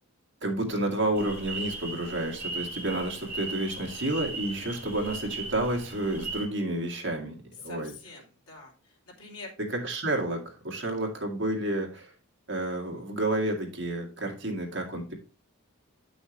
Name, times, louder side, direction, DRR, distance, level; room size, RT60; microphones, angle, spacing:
voice 1, 0.4-7.9 9.8-12.1 12.5-15.1, right 1 dB, 55° right, 1 dB, 1.9 m, -30 dB
sound 1, 1.1-6.4, right 3 dB, 10° right, 2.3 m, -38 dB
voice 2, 4.8-5.2 7.6-9.5 10.8-10.9, left 3 dB, 85° left, 0 dB, 2.7 m, -46 dB
8.9 x 6.1 x 3.1 m, 0.35 s
head